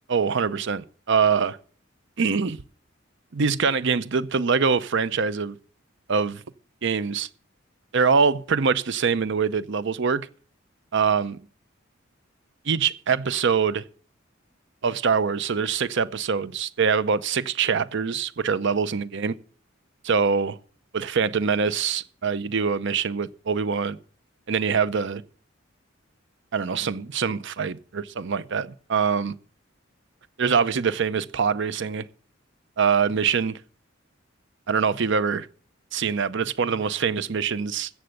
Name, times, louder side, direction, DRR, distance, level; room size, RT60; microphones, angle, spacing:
voice 1, 0.1-1.6 2.2-2.6 3.3-5.6 6.1-6.4 6.8-7.3 7.9-10.3 10.9-11.4 12.7-13.8 14.8-19.3 20.0-20.6 20.9-24.0 24.5-25.2 26.5-29.3 30.4-32.1 32.8-33.6 34.7-35.5 35.9-37.9, right 5 dB, 65° right, 0.6 m, -24 dB
14.5 x 7.9 x 6.5 m
head